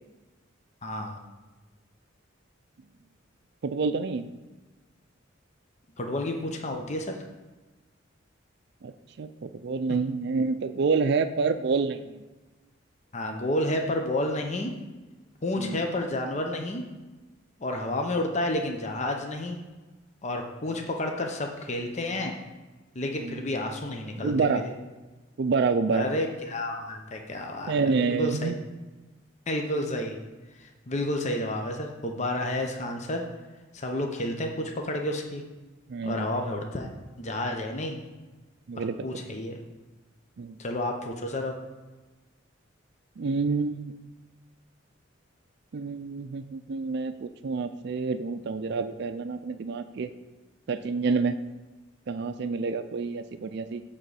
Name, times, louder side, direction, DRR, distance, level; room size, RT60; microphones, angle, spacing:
voice 1, 0.8-1.2 6.0-7.2 13.1-14.7 15.4-16.8 17.6-19.6 20.2-22.3 22.9-24.6 25.9-28.5 29.5-30.2 30.6-33.3 33.7-35.4 36.0-36.9 37.2-38.0 38.8-39.6 40.6-41.5, left 1 dB, 35° left, 3 dB, 0.7 m, -30 dB
voice 2, 3.6-4.3 8.8-8.9 9.2-12.2 15.6-15.8 23.2-23.4 24.2-24.7 25.4-26.1 27.7-28.6 35.9-36.3 38.7-39.2 40.4-40.6 43.2-43.9 45.7-50.1 50.7-51.4 52.1-53.8, right 4 dB, 55° right, 8 dB, 0.4 m, -28 dB
8.9 x 3.7 x 6.9 m, 1.2 s
head